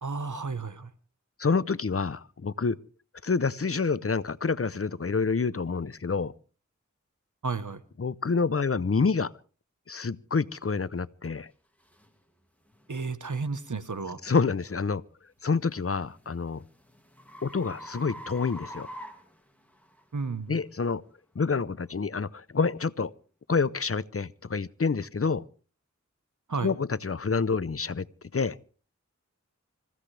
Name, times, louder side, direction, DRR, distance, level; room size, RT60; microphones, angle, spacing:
voice 1, 0.0-0.9 7.4-7.8 12.9-14.2 20.1-20.5 26.5-26.7, right 4 dB, 85° right, 1.1 m, -32 dB
voice 2, 1.4-2.8 3.2-6.3 8.0-9.3 9.9-11.5 14.2-15.0 15.4-16.6 17.4-18.9 20.5-21.0 21.3-23.1 23.5-25.4 26.6-28.1 28.3-28.6, left 4 dB, 50° left, 0.7 m, -27 dB
sound 1, 11.2-11.3 11.9-12.1 12.7-12.9 15.6-20.0, equal, 5° left, 2.4 m, -45 dB
26.0 x 15.5 x 3.3 m
wide cardioid pair, 40°, 30 cm